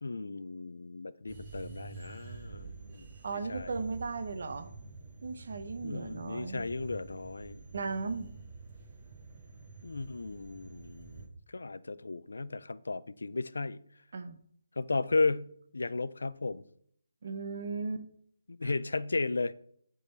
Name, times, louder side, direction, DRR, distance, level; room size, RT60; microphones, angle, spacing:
voice 1, 0.0-3.1 3.3-3.7 5.8-7.6 9.8-13.8 14.8-16.6 18.5-19.5, left 3 dB, 80° left, 0.5 m, -35 dB
sound 1, 1.3-11.3, right 4 dB, 25° right, 1.2 m, -48 dB
voice 2, 3.2-4.7 5.2-6.7 7.7-8.3 14.1-14.4 17.2-18.1 18.6-18.7, right 4 dB, 55° right, 0.8 m, -36 dB
11.0 x 3.9 x 4.1 m
hypercardioid pair, 170°, 0 cm